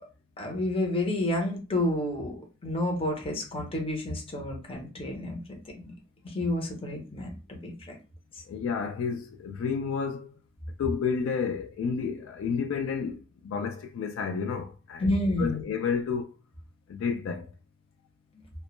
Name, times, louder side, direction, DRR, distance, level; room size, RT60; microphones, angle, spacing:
voice 1, 0.4-5.4 6.2-8.0 15.0-15.6, left 1 dB, 30° left, 0.6 m, -30 dB
voice 2, 8.5-10.3 10.8-16.3 16.9-17.5, left 6 dB, 80° left, 0.3 m, -31 dB
2.1 x 2.1 x 3.0 m
head